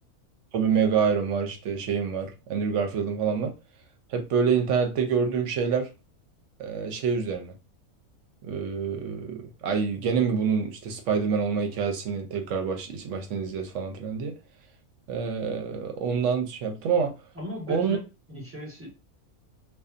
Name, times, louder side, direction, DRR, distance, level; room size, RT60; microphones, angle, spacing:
voice 1, 0.5-3.5 4.1-5.9 6.6-7.5 8.4-14.3 15.1-17.1 17.7-18.0, right 6 dB, 65° right, 0.9 m, -27 dB
voice 2, 17.3-18.0 18.3-18.9, left 1 dB, 10° right, 1.1 m, -36 dB
2.6 x 2.3 x 2.5 m
omnidirectional pair, 1.5 m